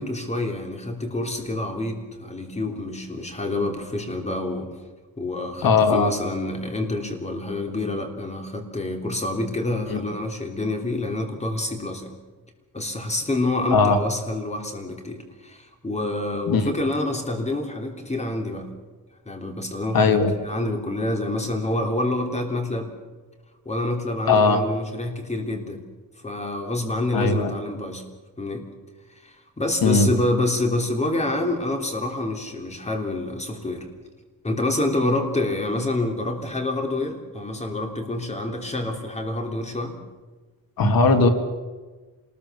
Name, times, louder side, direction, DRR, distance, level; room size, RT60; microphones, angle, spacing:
voice 1, 0.0-4.7 5.2-12.1 12.7-18.7 19.2-22.9 23.6-25.8 26.2-28.0 28.4-28.6 29.2-33.9 34.4-40.0, left 2 dB, 20° left, 4 dB, 3.4 m, -27 dB
voice 2, 5.6-6.1 9.9-10.0 13.7-14.0 16.5-16.6 19.9-20.4 24.3-24.6 27.1-27.5 29.8-30.1 40.8-41.3, left 4 dB, 75° left, 6 dB, 2.5 m, -18 dB
26.5 x 20.5 x 7.0 m, 1.3 s
wide cardioid pair, 140°, 35 cm